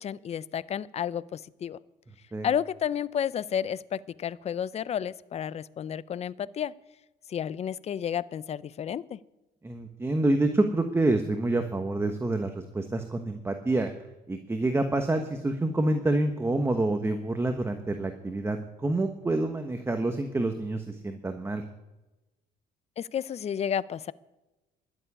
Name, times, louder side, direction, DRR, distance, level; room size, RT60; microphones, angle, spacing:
voice 1, 0.0-1.8 2.4-6.7 7.3-9.2 23.0-24.1, left 8 dB, 40° left, 19 dB, 0.5 m, -31 dB
voice 2, 9.6-13.9 14.3-21.6, right 2 dB, 15° right, 7 dB, 1.1 m, -27 dB
12.5 x 7.2 x 9.9 m, 1.1 s
cardioid pair, 110°, 17 cm